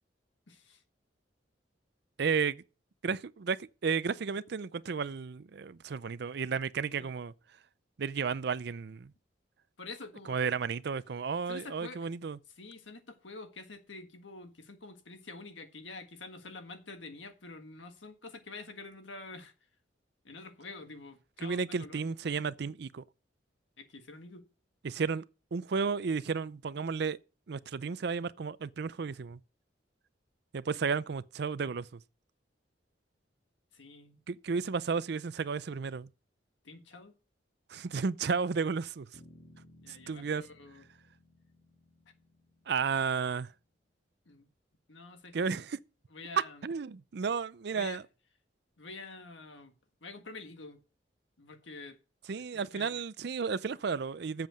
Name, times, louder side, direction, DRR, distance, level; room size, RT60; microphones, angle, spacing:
voice 1, 0.5-0.8 6.8-7.1 9.8-10.4 11.5-12.1 12.6-19.5 20.2-22.4 23.8-24.5 33.7-34.2 36.6-37.2 39.8-40.8 44.3-44.5 44.9-45.6 46.1-46.7 47.7-48.0 48.8-49.7 50.0-50.8 51.4-52.0 52.4-53.0, left 3 dB, 90° left, 1.6 m, -47 dB
voice 2, 2.2-2.6 3.0-7.3 8.0-9.1 10.3-12.4 21.4-23.0 24.8-25.2 25.5-27.2 27.5-29.4 30.5-32.0 34.3-36.1 37.7-39.1 39.9-40.4 42.7-43.5 45.3-45.8 46.6-48.0 52.3-54.5, right 5 dB, 60° right, 0.5 m, -33 dB
Bass guitar, 39.1-43.6, left 1 dB, 60° left, 2.2 m, -60 dB
7.7 x 7.2 x 6.3 m
head